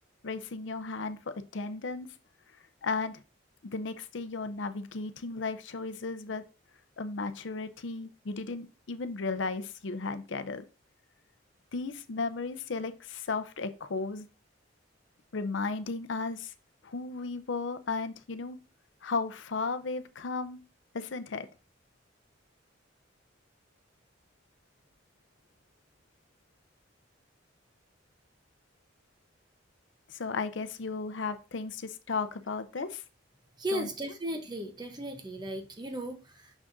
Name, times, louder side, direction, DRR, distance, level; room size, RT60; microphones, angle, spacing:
voice 1, 0.2-2.1 2.8-3.2 3.6-6.4 7.0-10.6 11.7-14.3 15.3-16.5 16.8-18.6 19.0-20.6 20.9-21.5 30.1-33.0 33.7-33.9, left 4 dB, 75° left, 0.6 m, -35 dB
voice 2, 33.6-36.5, right 1 dB, 20° right, 0.8 m, -36 dB
6.3 x 6.0 x 2.6 m
head